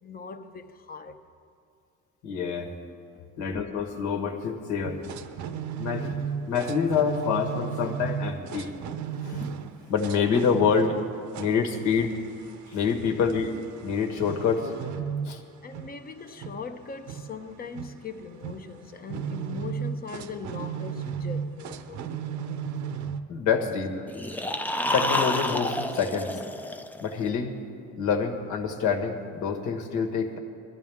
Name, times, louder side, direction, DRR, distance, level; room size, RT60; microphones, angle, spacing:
voice 1, 0.0-1.2 3.1-3.3 4.8-4.9 15.6-22.1, left 5 dB, 30° left, 0.8 m, -40 dB
voice 2, 2.2-2.7 3.4-5.0 5.8-6.2 6.5-8.7 9.2-9.5 9.9-11.0 11.4-12.2 12.7-13.5 13.8-14.7 15.2-15.4 23.3-23.9 24.9-26.4 27.0-27.6 28.0-30.4, left 6 dB, 70° left, 1.7 m, -26 dB
sound 1, 4.8-23.2, right 7 dB, 70° right, 0.8 m, -36 dB
sound 2, 24.1-27.2, left 1 dB, 5° left, 0.4 m, -29 dB
22.0 x 13.0 x 3.6 m
cardioid pair, 140°, 31 cm